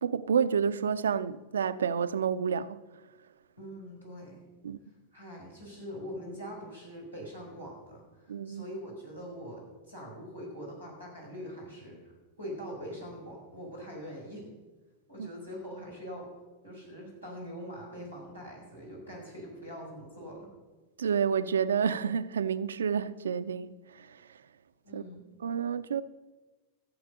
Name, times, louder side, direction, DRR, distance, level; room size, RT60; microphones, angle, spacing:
voice 1, 0.0-2.8 4.6-4.8 8.3-8.6 15.2-15.3 21.0-24.2 24.9-25.0 25.4-26.0, right 7 dB, 65° right, 0.5 m, -29 dB
voice 2, 3.6-4.4 5.1-9.6 9.9-14.4 15.1-16.3 16.6-20.5 24.8-25.2, equal, 85° left, 5.3 m, -43 dB
14.5 x 8.0 x 6.7 m
figure-of-eight pair, 90°, 0 cm